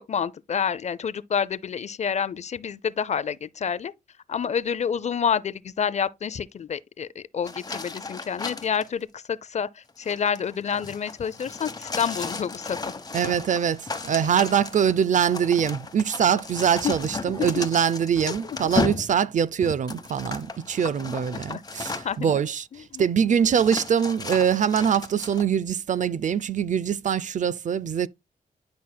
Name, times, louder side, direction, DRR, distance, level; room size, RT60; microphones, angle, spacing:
voice 1, 0.0-3.9 4.3-9.7 10.0-12.8 16.8-16.9 17.4-17.7 21.5-21.6 22.0-22.3 22.9-23.0, left 7 dB, 50° left, 0.5 m, -28 dB
sound 1, 7.4-8.9 9.9-22.3 23.0-23.1 23.5-25.4, left 3 dB, 25° left, 1.1 m, -34 dB
voice 2, 13.1-28.1, right 8 dB, 55° right, 0.5 m, -23 dB
10.5 x 5.7 x 2.2 m
cardioid pair, 100°, 15 cm